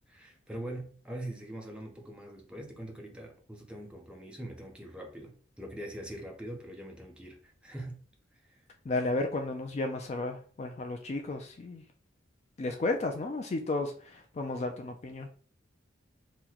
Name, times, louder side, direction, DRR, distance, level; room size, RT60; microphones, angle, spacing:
voice 1, 0.1-8.0 8.3-8.7, right 1 dB, 5° right, 0.6 m, -43 dB
voice 2, 8.8-11.8 12.6-15.3, left 2 dB, 35° left, 0.3 m, -33 dB
2.9 x 2.1 x 3.7 m
head